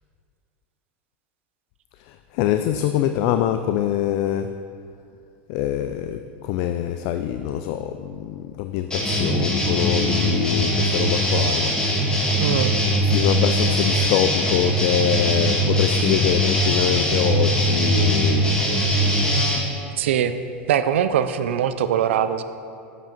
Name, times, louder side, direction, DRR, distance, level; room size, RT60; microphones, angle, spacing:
voice 1, 2.1-4.5 5.5-11.7 12.9-18.6, left 11 dB, 60° left, 9 dB, 0.4 m, -24 dB
sound 1, 8.9-19.6, equal, 10° left, 1.7 m, -21 dB
voice 2, 12.4-12.7 20.0-20.4 20.7-22.4, right 9 dB, 85° right, 11 dB, 0.5 m, -21 dB
8.1 x 7.3 x 4.5 m, 2.4 s
supercardioid pair, 120°, 6 cm